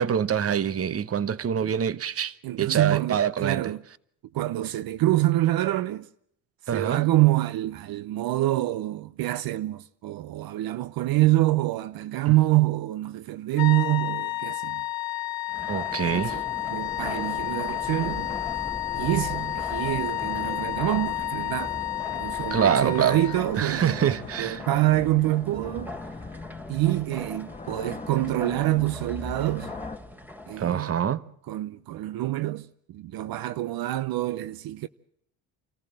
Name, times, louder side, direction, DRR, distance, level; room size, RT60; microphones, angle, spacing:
voice 1, 0.0-3.6 6.7-7.0 15.7-16.4 22.5-23.2 23.6-24.6 30.6-31.2, right 8 dB, 40° right, 1.0 m, -25 dB
voice 2, 2.4-3.8 4.3-6.1 6.7-14.8 16.1-16.4 16.7-18.3 18.9-21.8 22.1-25.9 26.7-29.7 30.5-30.9 31.5-34.9, right 16 dB, 70° right, 0.8 m, -26 dB
sound 1, 13.6-23.5, left 16 dB, 70° left, 1.5 m, -31 dB
sound 2, 15.5-30.8, left 1 dB, 5° right, 3.4 m, -43 dB
sound 3, 16.1-30.0, left 3 dB, 20° left, 1.2 m, -40 dB
27.0 x 14.5 x 7.8 m
cardioid pair, 90°, 38 cm